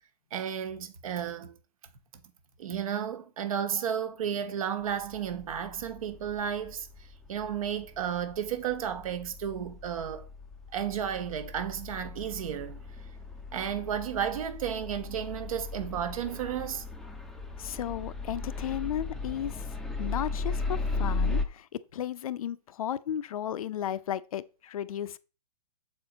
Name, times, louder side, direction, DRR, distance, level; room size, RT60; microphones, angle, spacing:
voice 1, 0.3-1.5 2.6-6.9 7.3-10.2 10.7-12.8 13.5-16.8, right 8 dB, 55° right, 1.4 m, -33 dB
sound 1, 4.9-21.4, left 3 dB, ahead, 0.6 m, -37 dB
voice 2, 17.6-19.7 20.0-25.2, left 10 dB, 60° left, 0.6 m, -34 dB
7.5 x 4.4 x 4.0 m
hypercardioid pair, 135°, 21 cm